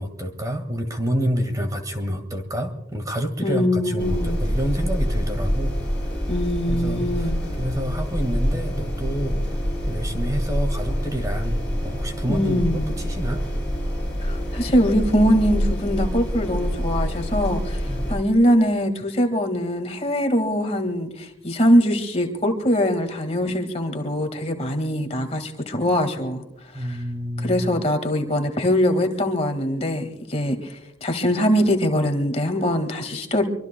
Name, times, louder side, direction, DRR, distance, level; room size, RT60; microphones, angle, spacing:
voice 1, 0.0-5.8 6.1-6.2 6.7-7.3 7.6-9.4 9.9-13.4 17.9-18.0 26.7-27.7, equal, 20° right, 6 dB, 1.7 m, -28 dB
voice 2, 3.4-4.4 6.3-7.4 12.3-12.9 14.2-26.4 26.7-27.0 27.4-33.4, equal, 35° left, 6 dB, 1.8 m, -22 dB
sound 1, 4.0-18.2, equal, 5° left, 6.9 m, -26 dB
24.5 x 24.5 x 2.2 m, 0.85 s
head